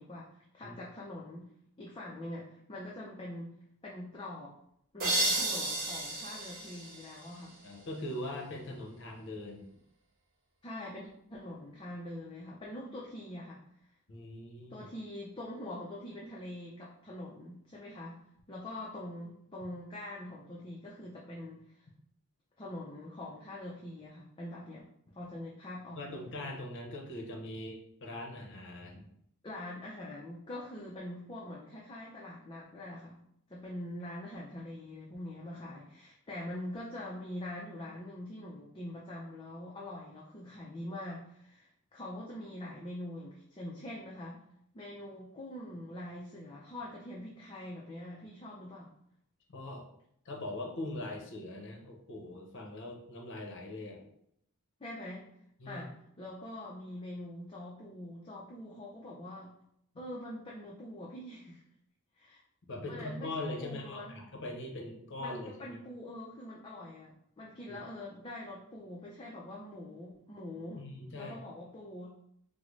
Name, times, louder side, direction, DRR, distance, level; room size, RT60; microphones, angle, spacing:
voice 1, 0.0-1.5 1.8-3.5 3.8-4.5 4.9-7.6 10.6-13.6 14.7-18.2 18.5-21.8 22.6-24.8 25.1-26.2 29.4-33.2 33.5-44.4 44.7-48.9 54.8-55.3 55.7-59.5 60.0-61.6 62.2-62.4 62.9-64.2 65.2-70.9 71.1-72.1, left 1 dB, 20° left, -4 dB, 0.4 m, -44 dB
sound 1, 5.0-7.7, right 2 dB, 40° right, 1.0 m, -33 dB
voice 2, 7.6-9.7 14.1-14.9 26.0-29.1 49.5-49.8 50.3-54.0 55.6-55.8 62.7-65.8 70.8-71.4, left 1 dB, 55° left, 1 dB, 0.7 m, -41 dB
3.7 x 2.0 x 3.1 m, 0.72 s
head